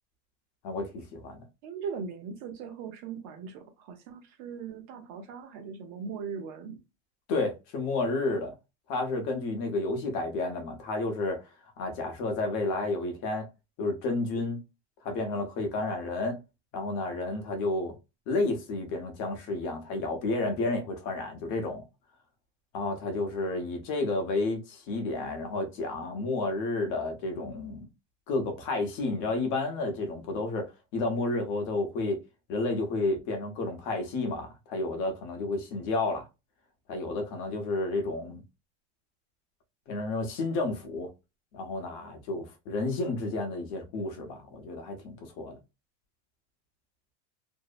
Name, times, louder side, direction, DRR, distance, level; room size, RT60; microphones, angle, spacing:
voice 1, 0.6-1.4 7.3-8.5 8.9-11.4 11.8-13.5 13.8-14.6 15.0-16.4 16.7-17.9 18.3-21.8 22.7-27.9 28.3-32.2 32.5-36.3 36.9-38.4 39.9-41.1 41.5-45.5, left 2 dB, 55° left, 0.8 m, -31 dB
voice 2, 1.6-6.8, right 6 dB, 50° right, 0.7 m, -39 dB
2.6 x 2.0 x 2.4 m
supercardioid pair, 155°, 36 cm